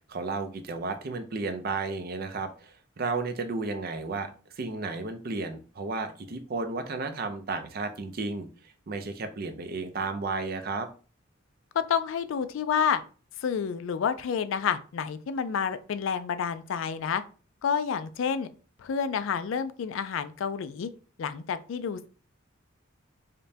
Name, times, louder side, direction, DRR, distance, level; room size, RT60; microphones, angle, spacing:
voice 1, 0.1-4.3 4.6-8.5 8.9-10.9, right 3 dB, 50° right, 8 dB, 0.5 m, -33 dB
voice 2, 11.9-13.0 13.4-17.2 17.6-18.5 18.8-20.9 21.2-22.1, left 7 dB, 75° left, 12 dB, 0.3 m, -29 dB
5.1 x 2.2 x 2.7 m, 0.38 s
head